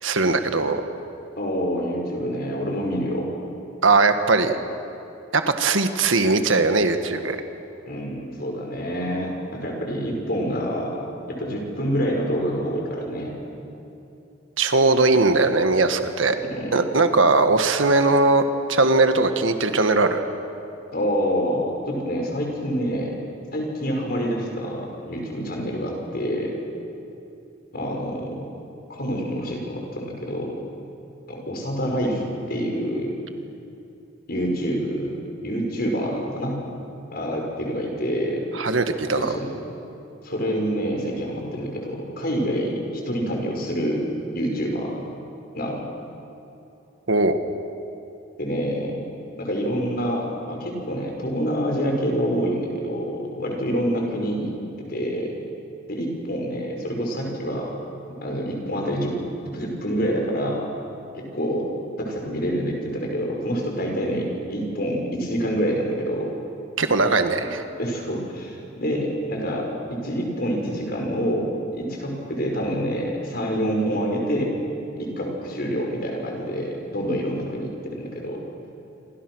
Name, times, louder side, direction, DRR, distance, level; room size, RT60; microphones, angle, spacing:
voice 1, 0.0-0.8 3.8-4.6 5.3-7.4 14.6-16.4 16.7-20.2 38.5-39.3 47.1-47.4 66.8-67.6, right 3 dB, 90° right, 7 dB, 1.6 m, -19 dB
voice 2, 1.4-3.3 7.9-11.0 11.3-13.3 16.5-16.7 20.9-23.1 23.5-26.5 27.7-28.3 28.9-30.6 31.3-33.1 34.3-36.6 37.1-38.4 39.1-39.5 40.2-42.8 43.1-44.0 44.3-45.0 45.5-45.9 48.4-49.0 49.4-54.5 54.9-55.3 55.9-57.7 58.2-59.1 59.5-60.6 61.1-61.7 62.0-66.3 67.8-69.7 70.0-74.5 75.0-78.4, equal, 50° left, 0 dB, 5.7 m, -27 dB
27.5 x 27.0 x 6.4 m, 2.8 s
head